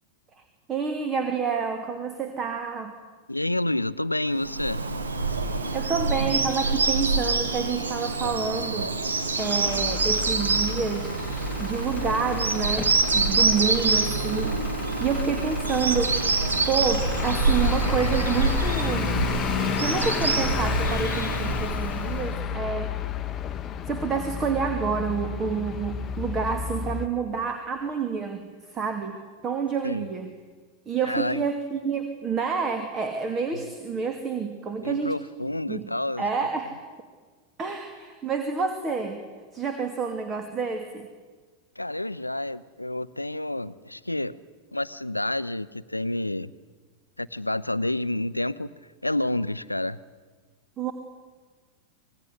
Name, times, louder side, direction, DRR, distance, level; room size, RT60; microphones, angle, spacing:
voice 1, 0.7-3.0 5.4-8.9 9.4-11.1 11.6-16.2 16.7-19.1 19.8-22.9 23.9-28.5 28.7-30.3 30.9-35.2 35.7-35.8 36.2-36.8 37.6-39.2 39.5-41.1 50.8-50.9, right 5 dB, 25° right, 7 dB, 2.5 m, -28 dB
voice 2, 3.3-4.8 29.8-30.1 31.0-31.4 33.5-33.6 34.8-36.2 41.8-44.4 44.7-46.5 47.2-48.7 49.0-50.0, left 1 dB, 85° left, 15 dB, 0.7 m, -29 dB
Bird vocalization bird call bird song, 4.4-22.4, right 3 dB, 75° right, 2.3 m, -26 dB
Truck / Idling, 9.4-27.1, left 6 dB, 25° left, 1.2 m, -32 dB
26.5 x 19.5 x 9.8 m, 1.4 s
figure-of-eight pair, 90°, 0 cm